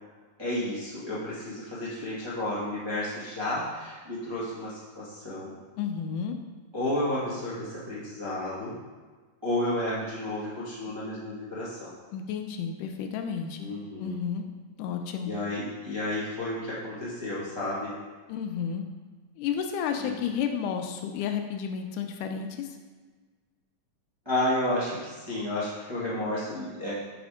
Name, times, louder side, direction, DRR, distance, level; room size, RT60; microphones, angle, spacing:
voice 1, 0.4-5.6 6.7-8.8 9.4-11.9 13.6-14.2 15.2-17.9 20.0-20.1 24.2-26.9, left 1 dB, 40° right, -9 dB, 0.3 m, -32 dB
voice 2, 5.8-6.4 12.1-13.7 14.0-14.4 14.8-15.3 18.3-18.8 19.4-22.7, left 7 dB, 80° left, 5 dB, 2.0 m, -31 dB
5.2 x 5.0 x 4.9 m, 1.4 s
omnidirectional pair, 3.8 m